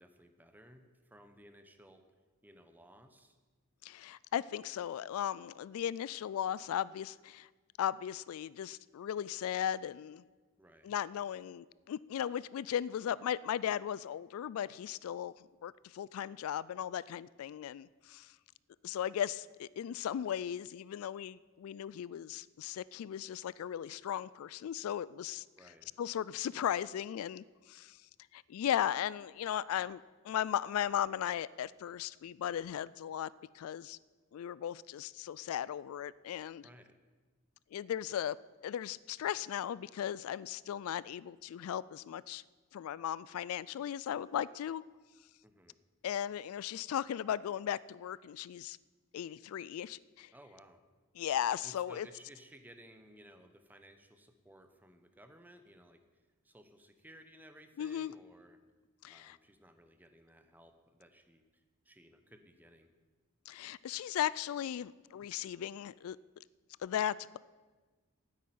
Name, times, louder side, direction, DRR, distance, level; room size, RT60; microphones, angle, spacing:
voice 1, 0.0-2.0 2.4-3.4 10.6-10.9 25.6-26.0 36.6-37.0 45.4-45.8 50.3-50.8 51.6-56.0 56.4-58.6 59.1-62.9, equal, 10° right, 7 dB, 0.9 m, -58 dB
voice 2, 3.8-7.5 7.8-10.2 10.8-18.3 18.8-25.5 26.0-28.0 28.3-34.0 34.3-36.7 37.7-38.4 38.6-42.4 42.7-44.8 46.0-48.8 49.1-50.3 51.2-52.1 57.8-58.1 59.0-59.4 63.5-66.2 66.8-67.4, left 10 dB, 75° left, 20 dB, 0.3 m, -37 dB
9.7 x 8.5 x 9.2 m, 1.4 s
head